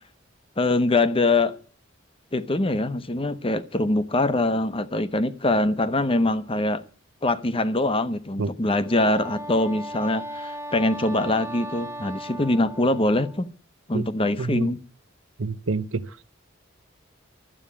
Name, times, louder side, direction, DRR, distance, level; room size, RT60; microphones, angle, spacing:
voice 1, 0.6-1.6 2.3-6.8 7.2-13.5 13.9-14.8, left 2 dB, 25° left, 0.9 m, -23 dB
Wind instrument woodwind instrument, 8.8-13.5, equal, 15° right, 0.7 m, -37 dB
voice 2, 15.4-16.0, right 3 dB, 70° right, 0.7 m, -27 dB
12.5 x 8.8 x 9.8 m
head